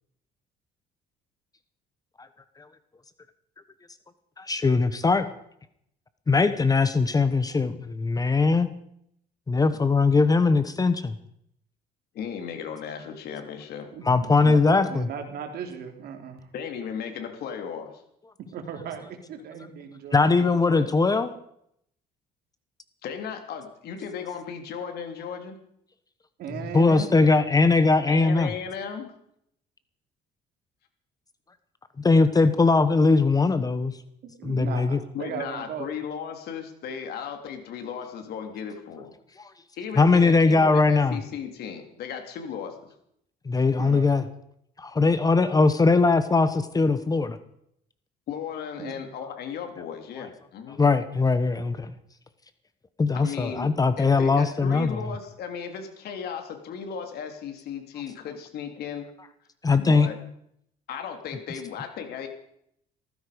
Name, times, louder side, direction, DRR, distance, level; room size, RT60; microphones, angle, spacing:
voice 1, 4.4-5.3 6.3-8.7 9.5-11.2 14.0-15.1 20.1-21.3 26.7-28.5 32.0-33.9 34.4-35.0 39.4-39.5 40.0-41.2 43.4-44.2 44.8-47.4 50.8-51.9 53.0-55.0 59.6-60.1, left 3 dB, 20° left, 12 dB, 1.1 m, -20 dB
voice 2, 12.1-13.9 14.4-14.5 16.5-17.9 23.0-25.6 28.1-29.1 35.1-39.1 39.8-42.9 48.3-50.8 53.1-53.7 54.0-59.1 59.8-60.2 60.9-62.3, left 7 dB, 70° left, 5 dB, 3.2 m, -36 dB
voice 3, 13.9-16.5 18.5-20.3 20.7-20.9 26.4-27.1 34.2-35.9 43.8-44.1 48.8-49.0, right 7 dB, 65° right, 5 dB, 3.3 m, -37 dB
17.0 x 15.0 x 5.1 m, 0.72 s
cardioid pair, 110°, 17 cm